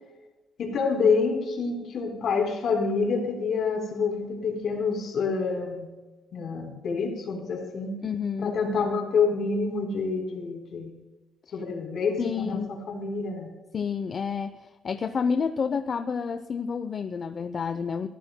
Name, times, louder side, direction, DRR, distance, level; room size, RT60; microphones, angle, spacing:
voice 1, 0.6-5.9 6.3-7.9 8.4-10.9 11.5-13.5, left 5 dB, 65° left, 2 dB, 3.9 m, -27 dB
voice 2, 8.0-8.6 12.2-12.7 13.7-18.1, left 6 dB, 45° left, 10 dB, 0.6 m, -29 dB
22.0 x 14.0 x 2.2 m, 1.2 s
cardioid pair, 90°, 0 cm